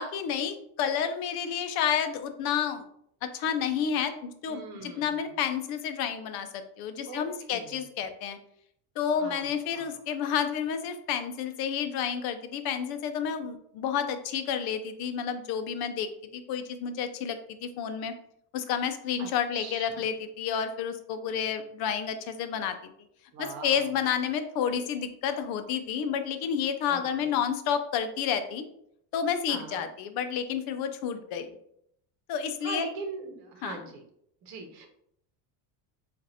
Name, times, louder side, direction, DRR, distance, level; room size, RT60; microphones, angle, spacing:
voice 1, 0.0-2.8 3.2-8.4 9.0-18.1 18.5-22.8 23.4-28.6 29.1-31.5 32.3-32.9 33.6-33.8, left 8 dB, 55° left, 8 dB, 0.6 m, -30 dB
voice 2, 4.5-5.4 7.0-7.8 9.1-9.9 19.2-20.1 23.3-23.9 26.9-27.3 29.5-29.9 32.6-34.0 34.4-34.9, right 3 dB, 55° right, 4 dB, 1.0 m, -41 dB
7.2 x 2.5 x 2.8 m, 0.72 s
cardioid pair, 155°, 45 cm